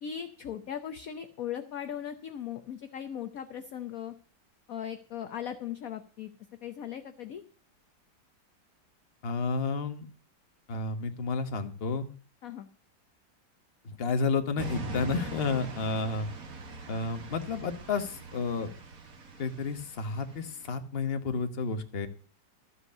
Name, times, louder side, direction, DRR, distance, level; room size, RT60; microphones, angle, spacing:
voice 1, 0.0-4.1 4.7-6.3 6.6-7.4 12.4-12.7, left 9 dB, 60° left, 9 dB, 1.1 m, -38 dB
voice 2, 9.2-10.1 10.7-12.1 13.8-16.3 16.9-18.7 19.4-22.1, left 4 dB, 35° left, 8 dB, 1.3 m, -31 dB
sound 1, 14.6-20.7, right 2 dB, 50° right, 1.9 m, -42 dB
13.5 x 8.1 x 6.6 m, 0.39 s
omnidirectional pair, 2.0 m